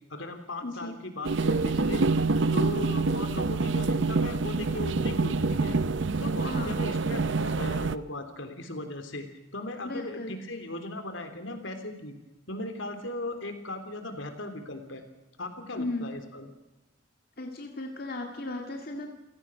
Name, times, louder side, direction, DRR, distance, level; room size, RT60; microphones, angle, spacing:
voice 1, 0.1-2.0 2.5-5.8 6.2-9.3 9.5-12.1 12.5-15.0 15.4-16.5, left 1 dB, 70° left, 7 dB, 3.4 m, -37 dB
voice 2, 0.6-0.9 6.4-6.7 9.8-10.4 15.8-16.1 17.4-19.1, left 2 dB, 50° left, 2 dB, 2.1 m, -35 dB
sound 1, 1.2-8.0, right 3 dB, 65° right, 0.7 m, -26 dB
28.5 x 17.0 x 6.4 m, 1.0 s
head